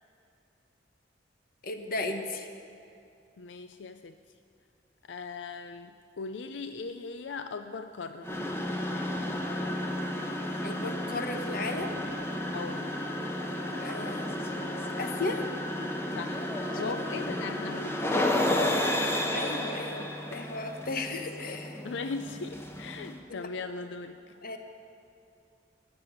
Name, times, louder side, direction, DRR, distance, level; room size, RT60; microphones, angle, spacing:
voice 1, 1.6-2.5 10.6-11.9 13.8-15.4 16.8-16.9 17.5-17.6 17.9-18.0 19.3-21.8 23.3-23.5 24.4-24.6, left 2 dB, 55° left, 6 dB, 1.2 m, -35 dB
voice 2, 3.4-4.1 5.1-8.3 12.5-12.9 16.1-16.4 16.8-19.1 21.8-24.2, left 4 dB, 90° left, 9 dB, 0.5 m, -39 dB
sound 1, 8.2-23.2, left 1 dB, 15° left, 1.1 m, -32 dB
16.0 x 6.9 x 9.4 m, 2.6 s
head